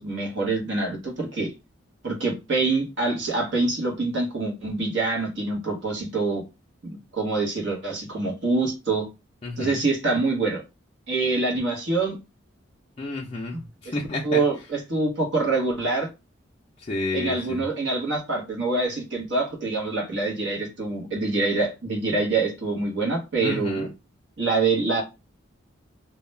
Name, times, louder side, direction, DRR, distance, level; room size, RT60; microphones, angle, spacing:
voice 1, 0.0-1.5 2.0-6.4 6.8-9.1 9.6-10.6 11.1-12.2 13.8-13.9 14.2-16.1 17.1-23.9 24.4-25.0, right 3 dB, 60° right, 0.9 m, -25 dB
voice 2, 9.4-9.8 13.0-14.4 16.8-17.6 23.4-23.9, left 2 dB, 30° left, 0.3 m, -30 dB
2.3 x 2.1 x 3.1 m
head